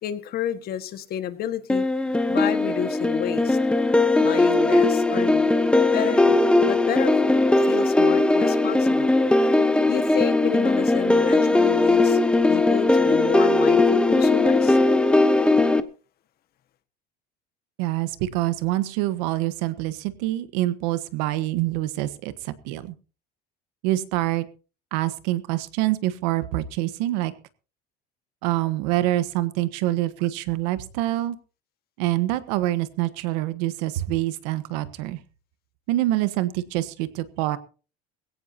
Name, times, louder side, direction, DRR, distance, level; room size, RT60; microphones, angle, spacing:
voice 1, 0.0-1.8 2.3-3.6 4.2-5.5 5.9-6.4 6.7-7.2 7.6-9.1 9.4-9.5 9.9-12.2 12.5-14.8, left 10 dB, 50° left, 1.8 m, -30 dB
sound 1, 1.7-15.8, left 2 dB, 5° left, 1.0 m, -19 dB
voice 2, 17.8-22.9 23.8-24.5 24.9-27.3 28.4-31.4 32.0-35.2 35.9-37.6, right 16 dB, 85° right, 1.4 m, -26 dB
20.0 x 17.0 x 2.9 m
cardioid pair, 130°, 21 cm